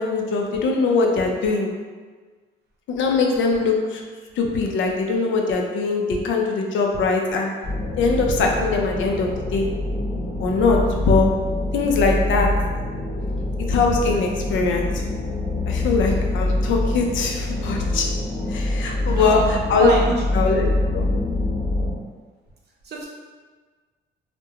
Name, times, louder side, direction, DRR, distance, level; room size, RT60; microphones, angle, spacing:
voice 1, 0.0-1.7 2.9-4.0 4.4-7.5 8.0-9.7 10.4-11.3 11.7-12.5 13.7-15.0 15.7-18.1 18.5-19.9 20.3-20.7 20.9-21.1, left 4 dB, 70° left, 1 dB, 0.5 m, -21 dB
sound 1, 7.6-21.9, left 1 dB, 40° left, 0.9 m, -25 dB
voice 2, 19.1-19.5 19.8-20.2 22.8-23.1, right 3 dB, 55° right, -3 dB, 0.6 m, -25 dB
2.3 x 2.1 x 2.8 m, 1.4 s
cardioid pair, 90°, 20 cm